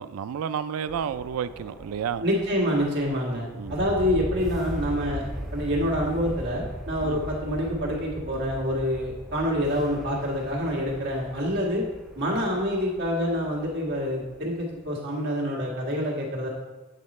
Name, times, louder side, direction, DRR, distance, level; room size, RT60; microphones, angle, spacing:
voice 1, 0.0-2.2 3.5-3.8 7.0-7.2, right 8 dB, 80° right, 13 dB, 0.3 m, -31 dB
sound 1, 0.9-14.8, equal, ahead, 0.5 m, -39 dB
voice 2, 2.2-5.2 5.5-11.8 12.1-16.5, equal, 55° right, -3 dB, 1.7 m, -27 dB
8.4 x 3.9 x 4.2 m, 1.2 s
head